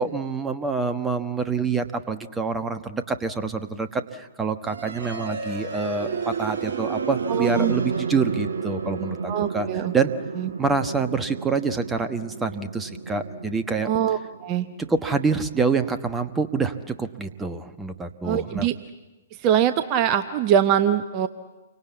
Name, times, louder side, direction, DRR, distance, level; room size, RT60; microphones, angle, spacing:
voice 1, 0.0-9.7 9.9-10.1 10.6-13.9 14.9-18.7, right 4 dB, 10° right, 9 dB, 1.2 m, -26 dB
sound 1, 4.6-16.5, right 5 dB, 55° right, 1.3 m, -32 dB
voice 2, 7.3-8.0 9.3-9.9 10.4-10.5 13.8-14.7 18.2-18.8 19.4-21.3, right 9 dB, 30° right, 10 dB, 0.9 m, -23 dB
28.5 x 24.5 x 8.2 m, 1.1 s
figure-of-eight pair, 115°, 0 cm